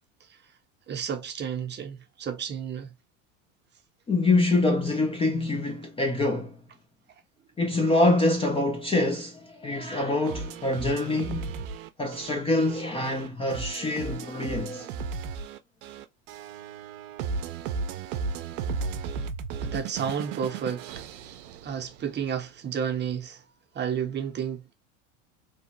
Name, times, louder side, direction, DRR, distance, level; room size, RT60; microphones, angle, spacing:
voice 1, 0.9-2.9 19.6-23.4 23.7-24.7, right 8 dB, 25° right, 0.7 m, -32 dB
voice 2, 4.1-6.6 7.6-11.6 12.0-14.9, left 2 dB, 15° left, 0.4 m, -25 dB
sound 1, 10.2-22.2, right 5 dB, 65° right, 0.6 m, -35 dB
2.9 x 2.1 x 3.0 m
hypercardioid pair, 85°, 40 cm